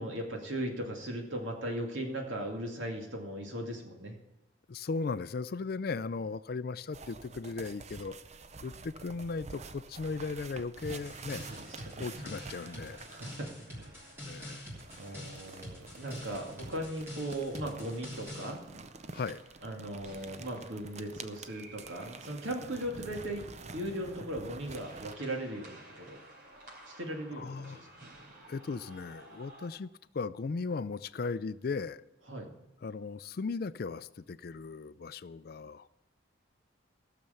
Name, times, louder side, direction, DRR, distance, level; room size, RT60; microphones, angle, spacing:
voice 1, 0.0-4.2 11.5-12.1 13.1-14.0 15.0-18.6 19.6-26.2 26.9-28.1 32.3-32.5, right 1 dB, 80° right, 2.4 m, -38 dB
voice 2, 4.7-8.2 8.6-11.5 12.0-13.0 14.2-14.8 15.1-15.3 19.1-19.4 27.3-27.8 28.5-32.0 32.8-35.9, left 4 dB, 50° left, 0.4 m, -37 dB
sound 1, 6.9-13.5 14.7-25.1, right 4 dB, 35° right, 0.5 m, -48 dB
sound 2, 10.8-18.5, equal, 15° right, 3.1 m, -46 dB
sound 3, 11.4-29.7, right 1 dB, 50° right, 4.1 m, -56 dB
15.5 x 6.7 x 7.1 m
head